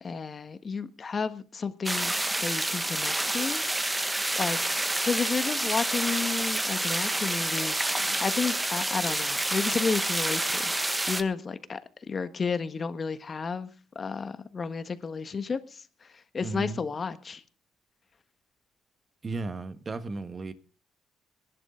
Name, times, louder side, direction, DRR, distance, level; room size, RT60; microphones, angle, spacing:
voice 1, 0.0-2.1 2.4-3.6 4.4-4.6 5.0-10.6 11.1-11.8 12.1-15.8 16.3-17.4, left 5 dB, 40° left, 1.4 m, -32 dB
sound 1, 1.9-11.2, right 1 dB, 10° right, 1.3 m, -28 dB
voice 2, 16.4-16.8 19.2-20.5, right 3 dB, 35° right, 1.4 m, -34 dB
20.0 x 11.0 x 3.8 m
cardioid pair, 90°, 0 cm